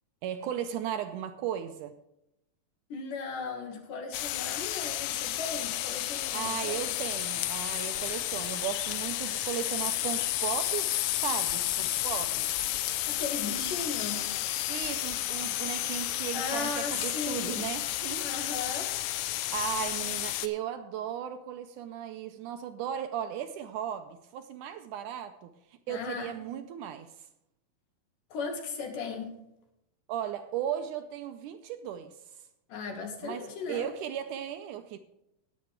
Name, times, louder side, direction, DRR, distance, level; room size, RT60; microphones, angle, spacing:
voice 1, 0.2-2.0 6.3-12.5 14.7-18.3 18.7-18.8 19.5-25.5 25.9-27.1 30.1-32.1 33.2-35.0, right 9 dB, 75° right, 1.9 m, -36 dB
voice 2, 2.9-6.9 13.1-14.3 16.3-17.7 18.2-18.9 25.9-26.4 28.3-29.3 32.7-33.9, left 4 dB, 70° left, 3.2 m, -37 dB
sound 1, 4.1-20.5, left 14 dB, 90° left, 2.4 m, -32 dB
19.0 x 7.9 x 3.3 m
omnidirectional pair, 4.0 m